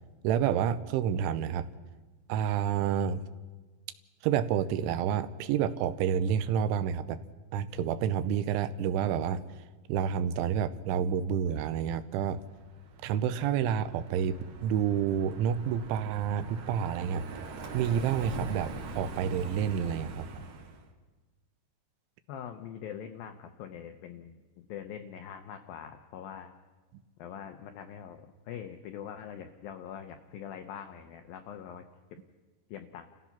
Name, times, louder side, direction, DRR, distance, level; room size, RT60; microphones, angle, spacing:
voice 1, 0.2-1.7 2.3-3.2 4.2-7.2 7.5-9.4 9.9-12.4 13.0-17.2 17.7-20.3 26.9-27.0, right 8 dB, 90° right, 12 dB, 3.3 m, -29 dB
Car passing by, 12.4-20.9, right 3 dB, 60° right, 2.8 m, -43 dB
voice 2, 22.3-26.5 27.2-31.8 32.7-33.1, left 8 dB, 85° left, 6 dB, 2.0 m, -43 dB
29.5 x 15.5 x 5.9 m, 1.3 s
omnidirectional pair, 5.3 m